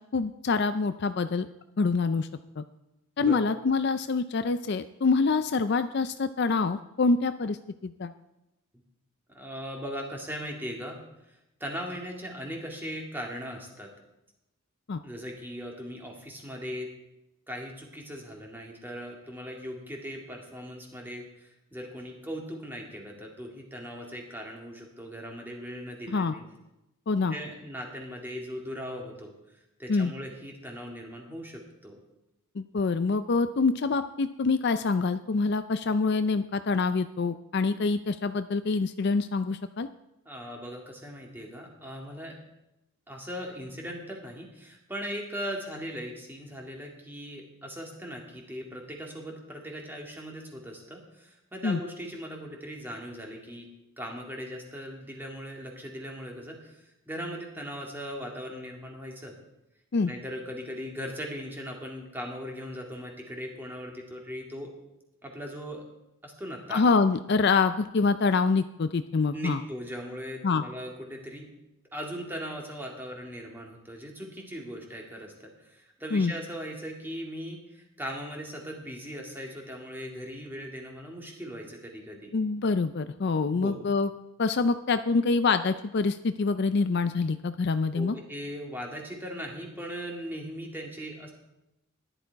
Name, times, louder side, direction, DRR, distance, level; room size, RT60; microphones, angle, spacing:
voice 1, 0.1-1.5 1.8-2.3 2.6-2.7 3.2-7.6 7.8-8.1 14.9-15.0 26.1-26.3 27.1-27.4 29.9-30.1 32.6-39.9 51.6-51.8 59.9-60.1 66.7-69.6 70.4-70.6 76.1-76.3 82.3-84.1 84.4-88.2, left 4 dB, 50° left, 11 dB, 0.4 m, -26 dB
voice 2, 9.3-11.0 11.6-13.9 15.0-16.9 17.5-26.4 27.3-29.3 29.8-32.0 40.3-42.4 43.1-53.7 54.0-59.3 60.1-64.7 65.2-65.8 66.2-66.8 69.3-71.5 71.9-82.3 83.5-83.8 87.9-91.3, equal, 10° right, 0 dB, 2.2 m, -39 dB
14.5 x 11.0 x 4.6 m, 0.92 s
head